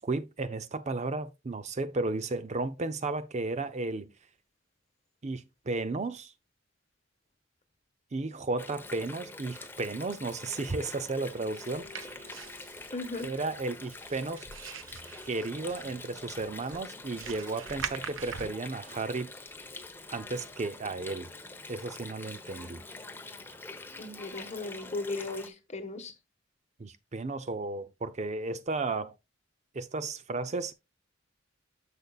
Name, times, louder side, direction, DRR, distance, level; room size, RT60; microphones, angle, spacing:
voice 1, 0.0-4.1 5.2-6.3 8.1-12.3 13.2-14.5 15.2-19.3 20.1-21.3 21.7-22.8 26.8-29.1 29.7-30.7, right 3 dB, 35° right, 0.5 m, -34 dB
Water, 8.6-25.5, left 2 dB, 10° left, 1.0 m, -45 dB
sound 1, 11.5-19.1, right 7 dB, 70° right, 0.8 m, -44 dB
voice 2, 12.9-13.3 24.0-26.1, left 3 dB, 35° left, 1.4 m, -36 dB
10.5 x 6.8 x 2.4 m
head